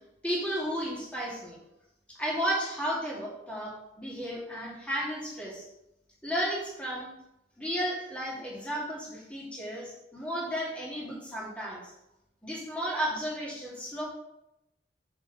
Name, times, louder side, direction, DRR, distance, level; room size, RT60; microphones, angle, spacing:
voice 1, 0.2-1.6 2.1-5.6 6.2-7.1 7.6-11.9 12.4-14.0, equal, 5° left, -5 dB, 2.3 m, -33 dB
7.0 x 4.4 x 6.4 m, 0.87 s
head